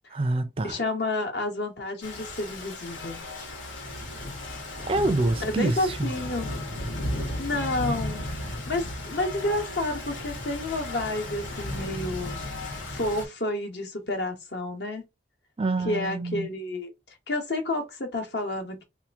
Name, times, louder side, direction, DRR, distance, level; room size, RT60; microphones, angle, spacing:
voice 1, 0.1-0.8 4.9-6.1 15.6-16.5, right 2 dB, 30° right, 0.4 m, -26 dB
voice 2, 0.6-3.2 5.4-6.5 7.4-8.2 8.7-12.4 12.9-15.0 15.8-16.9 17.3-18.8, left 2 dB, 60° left, 1.1 m, -30 dB
Rain, 2.0-13.3, left 1 dB, 90° left, 1.3 m, -35 dB
2.8 x 2.5 x 3.5 m
head